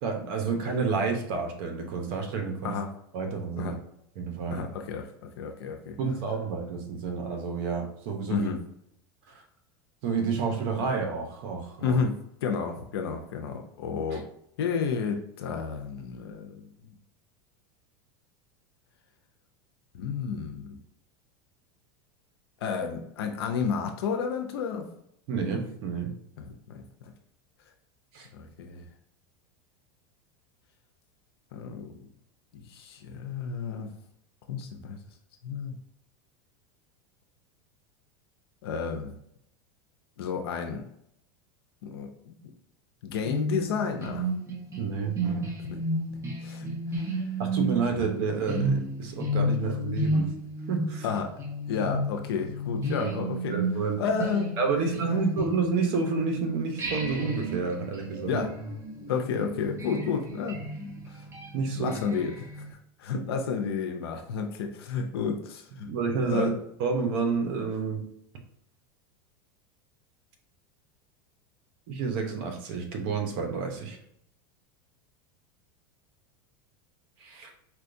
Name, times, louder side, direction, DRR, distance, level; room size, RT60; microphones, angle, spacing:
voice 1, 0.0-2.8 3.1-3.8 4.2-4.7 6.0-8.5 10.0-12.0 14.1-14.2 25.3-26.1 28.1-28.3 44.8-45.4 47.4-50.3 50.7-51.1 51.8-51.9 53.0-53.1 53.5-54.0 54.6-58.4 61.5-62.0 65.8-66.5 66.8-68.1 71.9-74.0 77.2-77.5, right 5 dB, 60° right, 4 dB, 0.8 m, -29 dB
voice 2, 4.5-6.0 8.3-8.6 11.8-14.2 14.6-16.9 19.9-20.8 22.6-24.9 26.7-27.1 28.3-28.8 31.5-31.9 32.5-33.9 34.5-35.0 35.4-35.7 38.6-39.1 40.2-40.9 41.8-42.4 43.0-44.3 45.7-45.8 46.1-46.7 47.1-47.2 51.0-51.3 51.7-53.6 54.0-55.2 58.3-58.5 59.1-60.6 61.1-61.3 61.7-65.9 66.2-66.6, left 6 dB, 85° left, 4 dB, 0.5 m, -31 dB
sound 1, 43.3-56.3 56.8-62.7, right 1 dB, 20° right, 0.9 m, -32 dB
4.3 x 2.3 x 2.6 m, 0.74 s
supercardioid pair, 120°, 13 cm